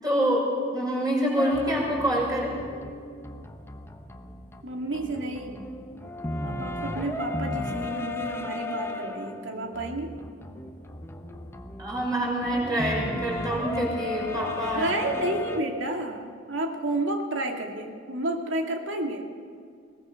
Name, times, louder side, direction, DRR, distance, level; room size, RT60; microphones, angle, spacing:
voice 1, 0.0-2.5 11.8-14.8, right 1 dB, 20° right, -3 dB, 6.4 m, -26 dB
sound 1, 1.4-4.6 4.9-15.6, left 2 dB, 15° left, 1.1 m, -35 dB
voice 2, 4.6-5.6 6.4-10.1 14.7-19.3, right 2 dB, 85° right, 2 dB, 2.4 m, -31 dB
21.5 x 18.5 x 6.5 m, 2.2 s
head